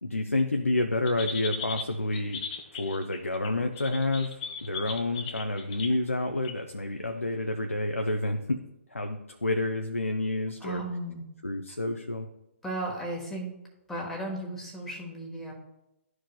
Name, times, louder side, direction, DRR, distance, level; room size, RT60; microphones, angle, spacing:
voice 1, 0.0-2.4 2.7-8.6 8.9-10.8 11.4-12.3, left 2 dB, 80° left, 4 dB, 0.6 m, -29 dB
sound 1, 1.1-5.9 6.4-6.7 7.3-7.4, left 5 dB, 30° left, 0.8 m, -38 dB
voice 2, 10.6-11.2 11.7-11.8 12.6-13.5 13.9-15.5, right 1 dB, 5° left, -1 dB, 1.3 m, -35 dB
12.5 x 4.7 x 2.3 m, 0.90 s
figure-of-eight pair, 130°, 7 cm